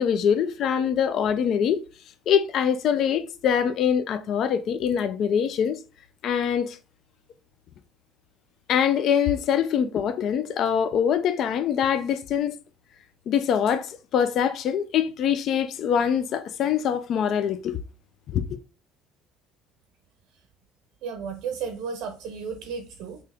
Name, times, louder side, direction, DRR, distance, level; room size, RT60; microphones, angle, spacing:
voice 1, 0.0-1.8 2.3-5.8 6.2-6.8 8.7-12.5 13.3-13.9 14.1-17.8 18.3-18.4, left 8 dB, 50° left, 0.3 m, -23 dB
voice 2, 21.0-23.2, right 6 dB, 70° right, 0.5 m, -33 dB
3.4 x 2.8 x 3.3 m
cardioid pair, 125°, 0 cm